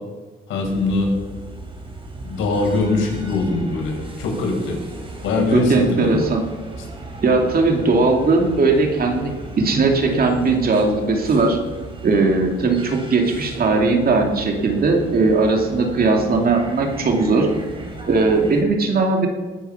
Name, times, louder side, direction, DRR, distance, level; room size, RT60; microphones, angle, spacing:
voice 1, 0.5-1.1 2.2-4.8 5.2-6.3, left 3 dB, 80° left, 0 dB, 5.3 m, -22 dB
sound 1, 0.6-18.6, right 2 dB, 25° right, 4.2 m, -36 dB
voice 2, 5.5-6.5 7.2-9.3 9.6-11.6 12.0-17.5 18.1-19.3, right 3 dB, 50° right, 2 dB, 2.5 m, -18 dB
20.0 x 9.3 x 5.7 m, 1.3 s
cardioid pair, 90°, 20 cm